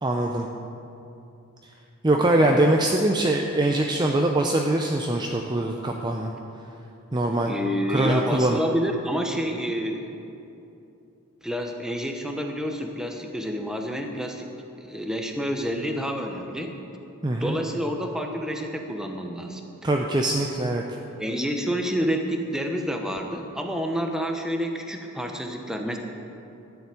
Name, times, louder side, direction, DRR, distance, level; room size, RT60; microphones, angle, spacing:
voice 1, 0.0-0.5 2.0-6.3 7.1-7.5 7.9-8.6 17.2-17.6 19.8-20.8, right 1 dB, 20° right, 1 dB, 0.5 m, -23 dB
voice 2, 2.1-2.6 7.4-10.1 11.4-14.5 14.8-16.8 17.4-19.6 21.2-26.0, equal, 5° right, 3 dB, 0.9 m, -29 dB
12.0 x 7.1 x 9.3 m, 2.8 s
head